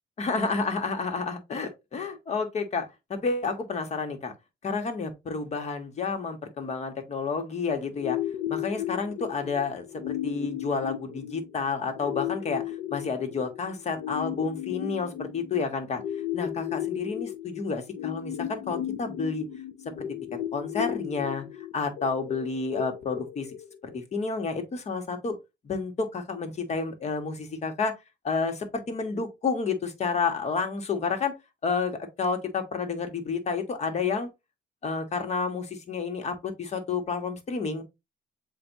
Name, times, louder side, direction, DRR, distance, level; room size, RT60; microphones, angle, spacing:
voice 1, 0.2-4.3 4.6-8.2 8.5-16.0 16.3-19.5 20.5-21.4 21.7-23.5 23.9-25.4 25.6-27.9 28.2-31.3 31.6-34.3 34.8-37.8, left 4 dB, 40° left, 1.5 m, -30 dB
sound 1, 8.0-24.0, left 12 dB, 85° left, 0.6 m, -35 dB
7.7 x 2.6 x 2.7 m
cardioid pair, 110°, 17 cm